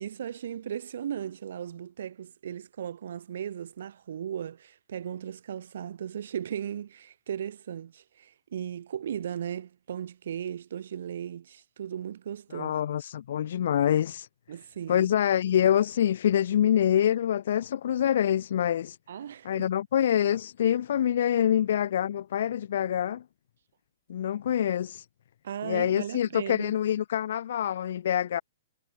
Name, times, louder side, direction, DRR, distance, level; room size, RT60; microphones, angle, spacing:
voice 1, 0.0-12.8 14.5-15.1 19.1-19.7 25.4-26.7, right 9 dB, 70° right, 1.5 m, -37 dB
voice 2, 12.5-14.3 14.9-19.0 19.4-23.2 24.1-25.0 25.6-28.4, left 10 dB, 65° left, 1.3 m, -25 dB
hypercardioid pair, 150°, 0 cm